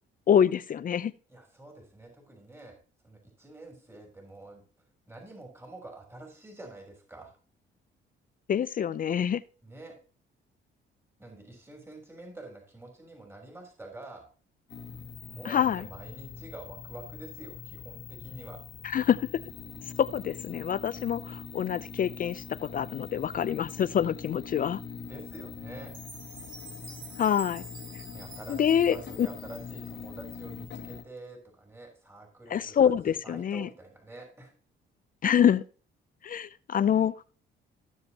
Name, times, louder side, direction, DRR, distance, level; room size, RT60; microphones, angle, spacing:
voice 1, 0.3-1.1 8.5-9.4 15.5-15.8 18.8-19.2 20.0-24.8 27.2-27.6 28.5-29.3 32.5-33.7 35.2-35.6 36.2-37.3, left 8 dB, 45° left, 0.5 m, -26 dB
voice 2, 1.3-2.8 3.0-4.6 5.1-7.3 9.6-9.9 11.2-14.3 15.2-18.6 25.1-25.9 28.1-34.5, right 2 dB, 10° right, 3.5 m, -47 dB
sound 1, 14.7-31.0, left 6 dB, 65° left, 1.6 m, -43 dB
Chime, 25.8-30.0, right 5 dB, 80° right, 2.7 m, -49 dB
15.5 x 7.3 x 2.9 m
cardioid pair, 90°, 20 cm